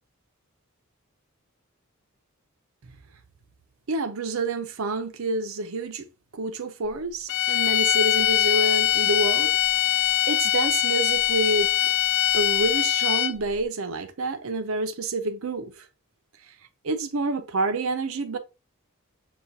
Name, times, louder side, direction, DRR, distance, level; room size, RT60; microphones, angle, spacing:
voice 1, 3.9-6.1 6.3-9.5 9.9-10.0 10.3-11.7 12.3-15.9 16.8-18.4, right 2 dB, 70° right, 0.5 m, -28 dB
sound 1, 7.3-13.5, left 14 dB, 60° left, 0.3 m, -22 dB
6.8 x 2.3 x 2.6 m
head